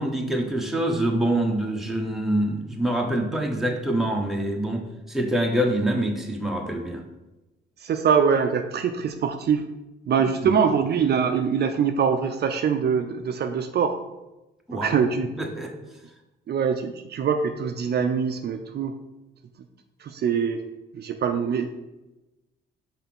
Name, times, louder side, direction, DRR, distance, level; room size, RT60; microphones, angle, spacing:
voice 1, 0.0-7.0 10.4-10.5 14.7-14.9 15.4-15.7, right 1 dB, ahead, 0 dB, 1.2 m, -25 dB
voice 2, 7.8-9.6 10.1-14.0 14.7-15.3 16.5-18.9 20.0-20.6 20.9-21.7, right 6 dB, 55° right, 6 dB, 0.6 m, -23 dB
5.6 x 4.1 x 6.0 m, 1.0 s
cardioid pair, 90°, 20 cm